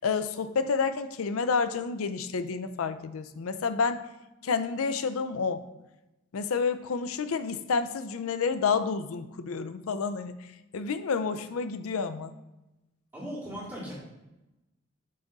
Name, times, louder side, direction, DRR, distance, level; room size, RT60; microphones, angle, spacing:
voice 1, 0.0-4.0 4.4-5.6 6.3-10.4 10.7-12.3, left 5 dB, 85° left, 11 dB, 0.5 m, -29 dB
voice 2, 13.1-13.9, equal, 15° right, -13 dB, 2.0 m, -38 dB
7.6 x 3.6 x 4.0 m, 0.98 s
head